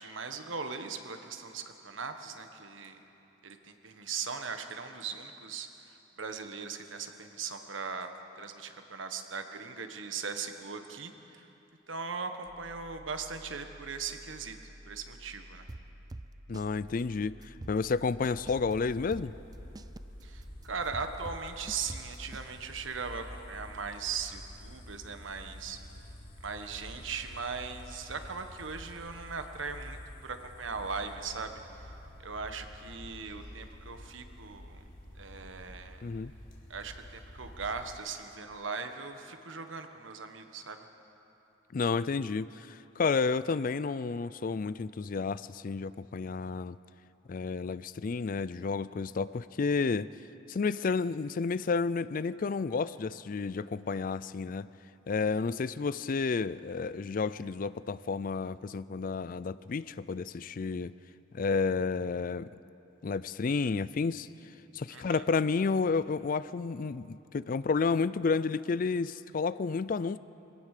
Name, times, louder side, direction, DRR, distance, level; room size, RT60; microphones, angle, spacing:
voice 1, 0.0-3.0 3.4-11.5 11.9-15.7 20.2-25.8 26.4-31.9 32.2-34.8 35.1-36.0 36.7-40.8 64.9-65.2, right 5 dB, 85° right, 7 dB, 1.4 m, -39 dB
sound 1, 12.4-22.2, equal, 45° right, 3.6 m, -53 dB
sound 2, 15.7-16.7 17.0-17.1 17.4-18.7 19.1-22.5, right 2 dB, 20° right, 0.4 m, -45 dB
voice 2, 16.5-19.3 36.0-36.3 41.7-46.8 47.3-50.1 50.5-54.7 55.1-60.9 61.3-62.5 63.0-64.3 64.7-70.2, left 4 dB, 45° left, 17 dB, 0.4 m, -31 dB
sound 3, 18.3-38.0, left 1 dB, 80° left, 3.5 m, -49 dB
22.5 x 17.0 x 6.7 m, 3.0 s
head